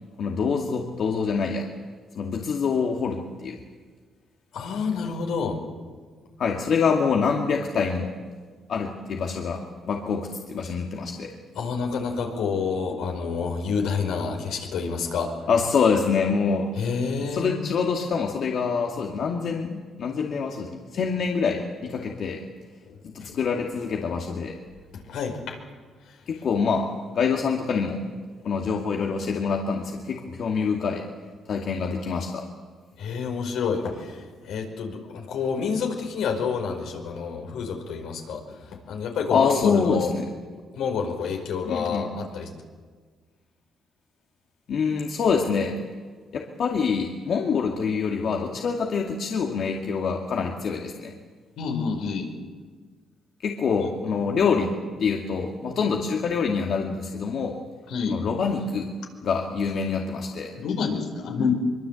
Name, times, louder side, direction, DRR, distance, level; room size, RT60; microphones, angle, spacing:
voice 1, 0.2-1.7 2.1-3.6 6.4-8.1 8.7-11.3 15.5-16.7 17.3-22.4 23.0-24.6 26.3-28.0 28.4-31.0 31.5-32.5 39.3-40.3 41.7-42.1 44.7-45.8 46.3-51.1 53.4-57.6 58.1-58.9 59.2-60.5, left 5 dB, 60° left, 1 dB, 2.4 m, -25 dB
voice 2, 4.5-5.6 11.5-15.3 16.8-17.5 20.9-21.0 24.9-25.6 33.0-40.1 40.7-42.5 51.6-52.3 53.8-53.9 57.9-58.2 60.5-61.5, left 5 dB, 80° left, 3 dB, 5.0 m, -28 dB
23.5 x 23.5 x 8.4 m, 1.5 s
cardioid pair, 90°, 0 cm